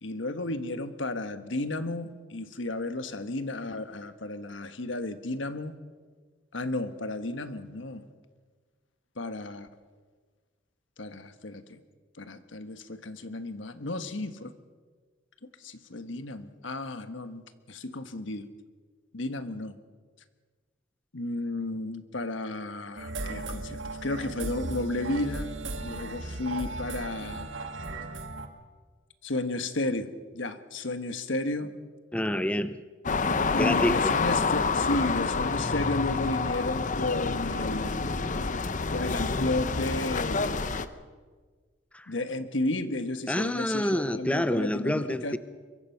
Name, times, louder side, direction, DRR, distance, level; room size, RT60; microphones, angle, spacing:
voice 1, 0.0-5.7 6.5-8.0 9.2-9.7 11.0-11.8 12.2-14.5 15.6-18.5 19.1-19.7 21.1-27.5 29.2-31.8 33.5-38.1 38.9-40.5 42.1-45.4, left 2 dB, 70° left, 10 dB, 1.4 m, -33 dB
sound 1, 22.9-28.5, right 2 dB, 75° right, 1.8 m, -36 dB
voice 2, 32.1-32.8 33.6-34.1 41.9-42.1 43.3-45.4, left 1 dB, 5° left, 12 dB, 0.6 m, -27 dB
sound 2, 33.0-40.9, left 4 dB, 40° left, 0.9 m, -28 dB
24.0 x 22.5 x 5.8 m, 1.5 s
head